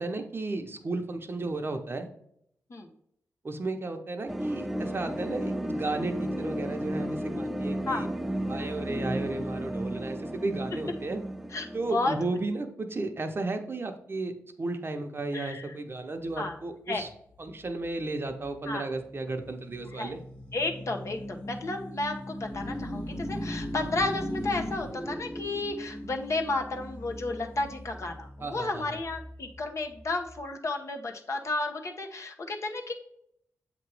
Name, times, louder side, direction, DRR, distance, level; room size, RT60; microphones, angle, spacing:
voice 1, 0.0-2.1 3.4-8.1 8.5-11.2 11.7-17.1 17.4-20.2 28.4-29.0, right 2 dB, 40° right, 6 dB, 0.8 m, -34 dB
sound 1, 4.3-12.5, right 1 dB, 5° right, 0.4 m, -34 dB
sound 2, 16.2-30.4, equal, 25° left, 1.2 m, -40 dB
voice 2, 20.5-32.9, left 2 dB, 55° left, 4 dB, 0.9 m, -32 dB
7.3 x 3.0 x 4.7 m, 0.72 s
cardioid pair, 75°, 6 cm